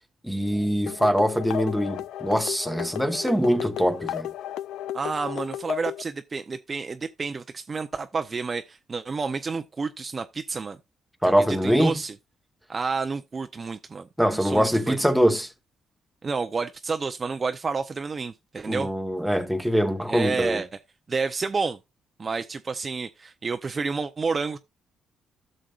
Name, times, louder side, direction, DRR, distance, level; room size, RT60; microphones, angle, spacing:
voice 1, 0.2-4.3 11.2-12.0 14.2-15.5 18.7-20.6, equal, ahead, 1.2 m, -23 dB
sound 1, 0.9-6.0, left 11 dB, 85° left, 0.4 m, -34 dB
voice 2, 4.9-10.8 11.2-12.1 12.7-15.0 16.2-18.9 20.1-20.7 21.1-21.8 22.2-24.6, right 4 dB, 35° right, 0.6 m, -30 dB
14.0 x 6.4 x 2.4 m
cardioid pair, 90°, 0 cm